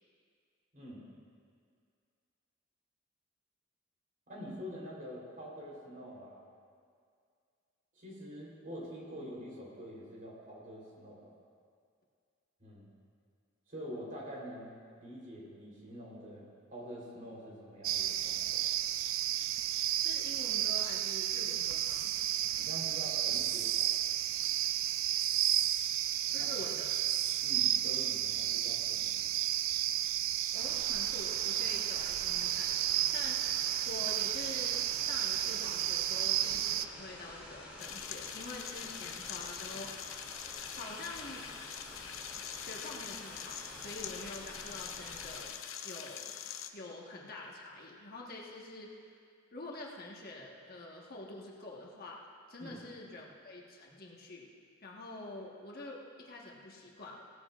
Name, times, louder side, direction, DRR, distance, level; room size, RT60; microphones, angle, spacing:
voice 1, 0.7-1.1 4.3-6.4 8.0-11.3 12.6-12.9 13.7-18.6 22.4-23.9 26.3-26.5 27.4-29.3 52.6-52.8, equal, 45° right, -4 dB, 3.6 m, -46 dB
sound 1, 17.8-36.9, right 12 dB, 90° right, 0.4 m, -32 dB
voice 2, 20.0-22.2 26.3-26.9 30.5-32.7 33.1-40.0 40.7-41.5 42.6-45.6 45.8-46.4 46.7-49.2 49.5-54.5 54.8-57.2, left 2 dB, 50° left, -2 dB, 1.4 m, -46 dB
sound 2, 30.5-45.5, left 1 dB, 10° right, 2.8 m, -50 dB
sound 3, 37.8-46.7, left 9 dB, 85° left, 0.7 m, -44 dB
17.0 x 14.0 x 2.5 m, 2.2 s
head